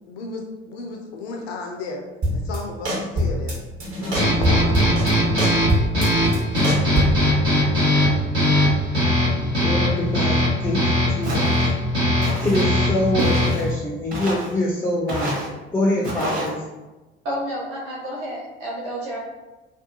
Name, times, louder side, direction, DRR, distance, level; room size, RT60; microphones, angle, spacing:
voice 1, 0.1-2.0 2.3-3.5 3.9-4.9 5.2-5.3, left 3 dB, 70° left, 0 dB, 0.5 m, -33 dB
sound 1, 2.2-2.6 2.9-3.5 3.8-5.1 5.4-7.3, equal, 50° right, 1.0 m, -22 dB
sound 2, 4.1-13.7, left 1 dB, 85° right, 1.0 m, -20 dB
voice 2, 9.6-11.5 12.4-15.4 15.7-16.6, left 1 dB, 10° left, -3 dB, 0.4 m, -24 dB
Walk footsteps, 11.2-11.7 12.2-12.6 13.2-13.7 14.1-14.5 15.1-15.5 16.0-16.5, right 1 dB, 25° right, 0.9 m, -28 dB
voice 3, 17.2-19.2, equal, 65° right, -7 dB, 0.8 m, -30 dB
2.5 x 2.2 x 2.6 m, 1.1 s
figure-of-eight pair, 55°, 32 cm